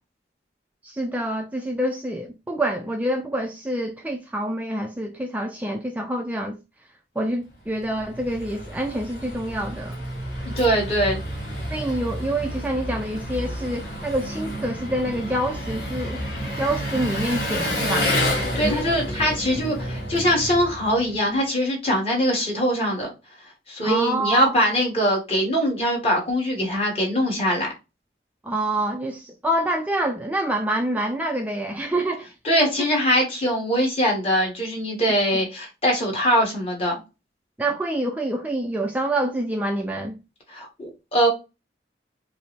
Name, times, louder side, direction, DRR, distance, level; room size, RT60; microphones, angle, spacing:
voice 1, 0.8-6.6 7.2-10.0 11.7-16.2 16.6-18.1 23.8-24.5 28.4-32.3 37.6-40.2, right 1 dB, 10° right, 0.3 m, -26 dB
Engine, 7.7-21.3, equal, 55° left, 2.0 m, -29 dB
voice 2, 10.6-11.2 18.5-23.1 23.7-27.7 32.4-36.9 40.5-41.3, equal, 35° left, 1.5 m, -22 dB
4.8 x 2.1 x 3.3 m
head